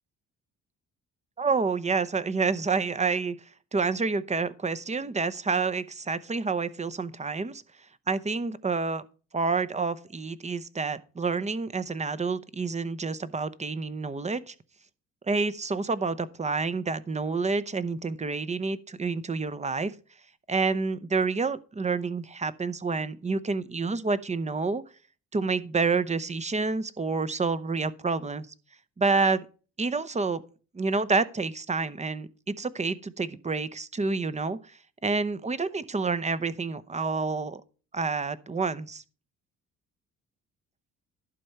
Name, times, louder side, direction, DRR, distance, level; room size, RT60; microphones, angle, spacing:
voice 1, 1.4-3.4 3.7-7.6 8.1-9.0 9.3-14.5 15.3-19.9 20.5-24.8 25.3-28.5 29.0-29.5 29.8-30.4 30.7-34.6 35.0-37.6 37.9-39.0, right 4 dB, 25° right, 0.7 m, -28 dB
11.5 x 4.5 x 6.5 m
cardioid pair, 90°, 30 cm